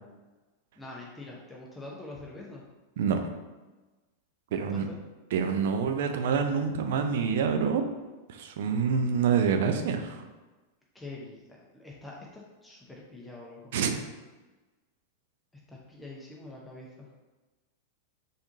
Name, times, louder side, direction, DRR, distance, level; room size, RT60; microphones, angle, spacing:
voice 1, 0.8-2.6 4.5-5.0 10.9-11.4 11.7-13.7 15.7-17.1, left 2 dB, 5° left, -4 dB, 0.8 m, -45 dB
voice 2, 4.5-4.9 5.3-7.8 8.3-10.2 13.7-14.0, right 6 dB, 55° right, 6 dB, 0.5 m, -27 dB
3.9 x 3.5 x 3.7 m, 1.2 s
figure-of-eight pair, 90°, 0 cm